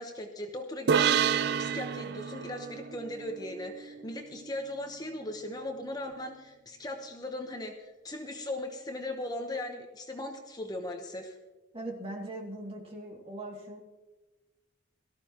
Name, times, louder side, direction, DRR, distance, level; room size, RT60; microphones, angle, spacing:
voice 1, 0.0-11.4, left 1 dB, 20° left, 3 dB, 1.0 m, -38 dB
sound 1, 0.9-4.4, right 7 dB, 55° right, 0.4 m, -29 dB
voice 2, 11.7-13.8, right 1 dB, 30° right, 0 dB, 2.4 m, -40 dB
18.0 x 13.5 x 2.9 m, 1.1 s
head